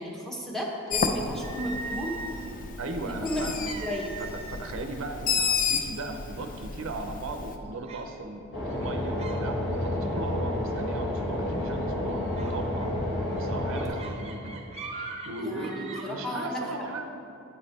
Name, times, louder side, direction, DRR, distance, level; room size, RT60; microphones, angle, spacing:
voice 1, 0.0-2.2 3.0-3.5 3.8-4.2 15.4-16.9, equal, ahead, -1 dB, 0.8 m, -34 dB
Bird, 0.9-7.6, left 5 dB, 40° left, 0.4 m, -32 dB
sound 1, 1.4-2.6 3.6-4.8 5.1-5.4 6.0-6.1 6.6-7.1 7.9-8.1 8.7-9.4 9.7-10.1 11.5-11.8 12.3-16.1, right 3 dB, 30° right, 0.6 m, -41 dB
voice 2, 2.8-3.7 4.2-13.0 13.4-14.6 15.3-17.2, right 2 dB, 70° right, 5 dB, 0.5 m, -37 dB
sound 2, 8.5-13.9, left 1 dB, 60° left, 1.6 m, -30 dB
9.0 x 5.3 x 4.1 m, 2.8 s
head